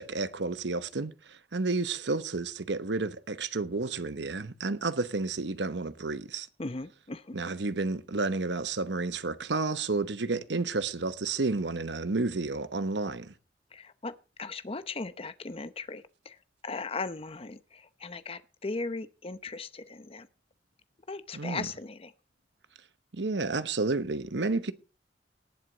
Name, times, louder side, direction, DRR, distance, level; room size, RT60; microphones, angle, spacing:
voice 1, 0.0-6.5 7.3-13.3 21.3-21.7 23.1-24.7, right 3 dB, 80° right, 1.0 m, -31 dB
voice 2, 6.6-7.4 13.7-16.4 16.6-20.3 21.1-22.1, left 3 dB, 35° left, 0.8 m, -38 dB
18.5 x 7.9 x 4.0 m
head